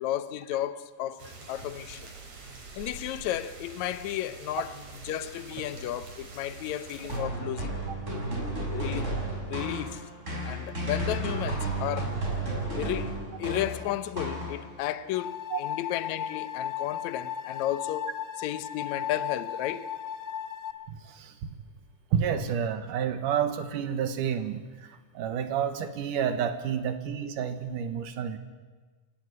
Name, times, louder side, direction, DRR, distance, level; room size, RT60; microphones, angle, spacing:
voice 1, 0.0-2.1 2.8-4.7 5.0-7.8 8.7-9.1 9.5-10.0 10.4-12.1 12.8-18.1 18.4-19.9, left 12 dB, 70° left, 2.0 m, -33 dB
sound 1, 1.2-7.2, right 3 dB, 55° right, 4.8 m, -45 dB
sound 2, 7.1-14.9, right 1 dB, 20° right, 5.8 m, -33 dB
sound 3, 15.1-20.7, left 9 dB, 90° left, 0.7 m, -36 dB
voice 2, 20.9-21.5 22.1-28.4, right 8 dB, 70° right, 2.9 m, -30 dB
27.0 x 16.5 x 9.7 m
omnidirectional pair, 4.0 m